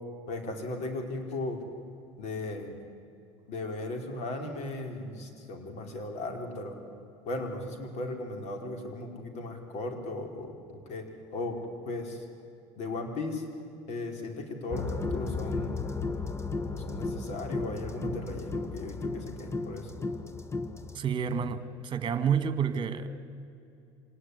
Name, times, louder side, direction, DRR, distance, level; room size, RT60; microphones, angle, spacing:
voice 1, 0.3-1.6 2.2-2.7 3.5-6.8 7.2-11.1 11.3-11.6 11.8-12.3 12.8-13.5 13.9-15.8 16.9-19.9, left 2 dB, 55° left, 4 dB, 5.0 m, -36 dB
sound 1, 14.7-21.0, left 3 dB, 20° left, 1.5 m, -34 dB
voice 2, 20.9-23.1, right 7 dB, 35° right, 11 dB, 2.0 m, -29 dB
25.5 x 19.0 x 10.0 m, 2.6 s
supercardioid pair, 90°, 14 cm